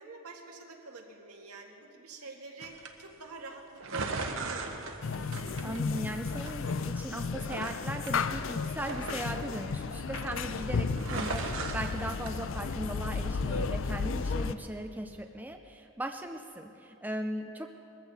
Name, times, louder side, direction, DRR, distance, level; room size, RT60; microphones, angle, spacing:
voice 1, 0.0-4.7, right 3 dB, 85° right, 1 dB, 1.9 m, -46 dB
sound 1, 2.6-2.9 3.8-6.2 6.5-7.1 7.5-9.8 10.1-10.6 10.9-12.3, right 3 dB, 60° right, 1.2 m, -38 dB
sound 2, 5.0-14.6, left 4 dB, 60° left, 0.5 m, -33 dB
voice 2, 5.6-17.7, right 1 dB, 10° right, 5 dB, 0.5 m, -38 dB
21.5 x 14.5 x 4.2 m, 2.7 s
head